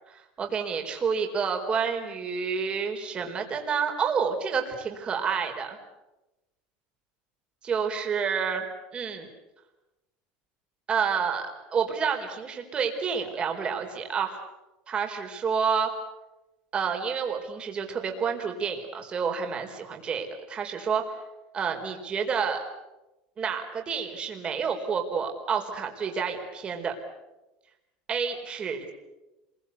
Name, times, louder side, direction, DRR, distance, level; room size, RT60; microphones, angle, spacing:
voice 1, 0.1-5.8 7.6-8.6 8.9-9.3 10.9-14.4 14.9-15.9 16.7-21.0 21.5-22.6 23.4-26.9 28.1-28.9, right 6 dB, 25° right, 3 dB, 4.4 m, -29 dB
27.5 x 22.5 x 8.3 m, 1.0 s
supercardioid pair, 135°, 4 cm